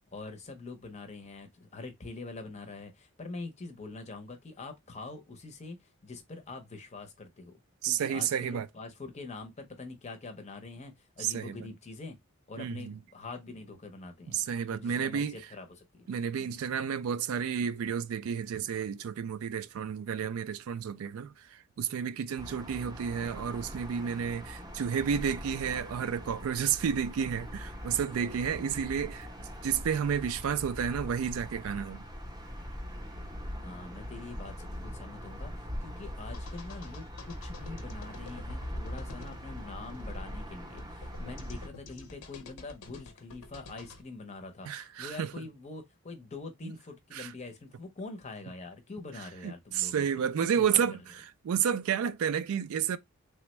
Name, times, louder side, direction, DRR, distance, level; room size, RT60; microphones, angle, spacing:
voice 1, 0.1-12.2 12.5-14.4 14.7-16.1 16.4-16.6 28.2-28.7 33.6-50.9, left 3 dB, 30° left, 0.6 m, -44 dB
voice 2, 7.8-8.7 11.2-11.6 12.6-13.0 14.3-15.4 16.1-32.0 44.7-45.3 46.6-46.7 47.1-47.3 49.4-53.0, right 7 dB, 75° right, 0.3 m, -31 dB
sound 1, 22.4-41.7, equal, 15° right, 0.6 m, -42 dB
sound 2, 36.3-44.0, left 1 dB, 90° left, 0.7 m, -46 dB
3.3 x 2.1 x 3.0 m
head